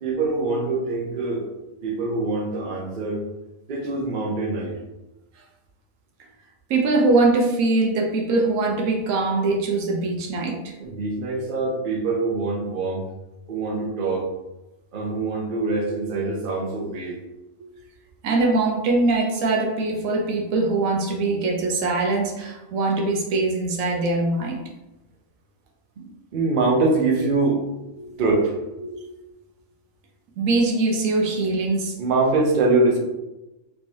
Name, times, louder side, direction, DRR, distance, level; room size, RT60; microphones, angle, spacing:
voice 1, 0.0-1.5 1.8-3.3 3.7-4.8 10.8-13.1 13.5-14.3 14.9-17.2 26.0-27.6 28.2-28.6 32.0-33.0, right 3 dB, 50° right, -1 dB, 0.7 m, -24 dB
voice 2, 6.7-10.7 17.6-17.7 18.2-24.6 28.0-28.1 28.8-29.1 30.4-31.9, right 3 dB, 75° right, 0 dB, 1.0 m, -22 dB
3.4 x 3.1 x 2.6 m, 1.0 s
omnidirectional pair, 1.4 m